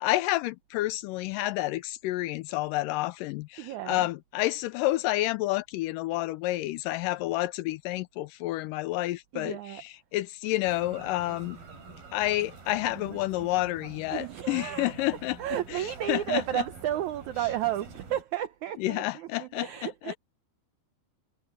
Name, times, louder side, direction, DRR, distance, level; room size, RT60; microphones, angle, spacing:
voice 1, 0.0-11.6 12.1-15.4 15.7-16.6 18.8-20.1, left 17 dB, 90° left, 1.9 m, -29 dB
voice 2, 3.6-4.1 9.3-9.8 14.1-14.9 15.4-20.1, right 12 dB, 85° right, 1.6 m, -32 dB
sound 1, 10.6-18.2, right 4 dB, 65° right, 6.3 m, -46 dB
omnidirectional pair, 4.5 m